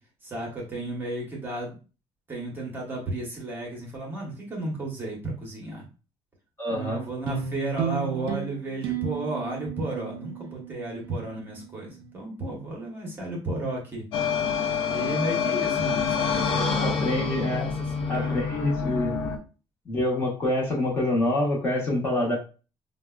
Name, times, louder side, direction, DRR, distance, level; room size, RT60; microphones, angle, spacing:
voice 1, 0.2-1.8 2.3-5.8 6.7-14.0 14.9-18.4, right 2 dB, 20° right, -1 dB, 0.8 m, -33 dB
voice 2, 6.6-7.0 16.8-17.7 18.1-19.2 19.9-22.4, left 1 dB, 25° left, -3 dB, 0.9 m, -26 dB
sound 1, 7.3-11.9, right 9 dB, 60° right, 0.4 m, -34 dB
sound 2, 14.1-19.4, left 6 dB, 55° left, 0.6 m, -27 dB
4.7 x 2.1 x 2.3 m, 0.34 s
cardioid pair, 175°, 10 cm